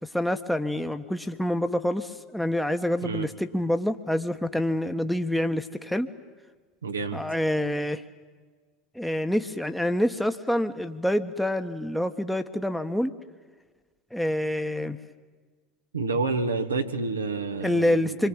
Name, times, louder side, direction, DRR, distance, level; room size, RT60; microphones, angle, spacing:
voice 1, 0.0-6.1 7.1-8.0 8.9-13.1 14.1-15.0 17.6-18.3, left 1 dB, 5° left, 7 dB, 1.4 m, -27 dB
voice 2, 6.8-7.2 15.9-18.3, right 3 dB, 85° right, 6 dB, 1.6 m, -29 dB
26.5 x 23.0 x 8.9 m, 1.4 s
figure-of-eight pair, 75°, 0 cm